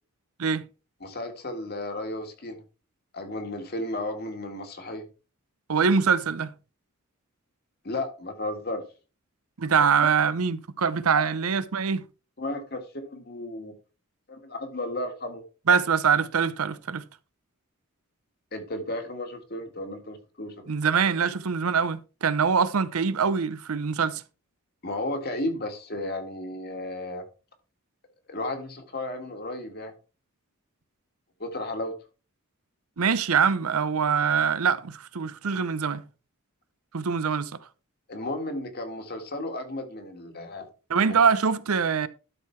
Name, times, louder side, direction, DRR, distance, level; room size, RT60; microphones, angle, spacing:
voice 1, 1.0-2.6 3.1-5.1 7.8-8.8 9.7-9.9 11.1-11.2 12.4-13.7 14.3-15.4 18.5-20.7 24.8-27.2 28.3-29.9 31.4-31.9 38.1-40.7 41.1-41.2, left 1 dB, 45° left, 1.8 m, -34 dB
voice 2, 5.7-6.5 9.6-12.0 15.7-17.0 20.7-24.2 33.0-36.0 36.9-37.5 40.9-42.1, right 6 dB, 80° right, 0.7 m, -24 dB
12.0 x 4.7 x 4.6 m
head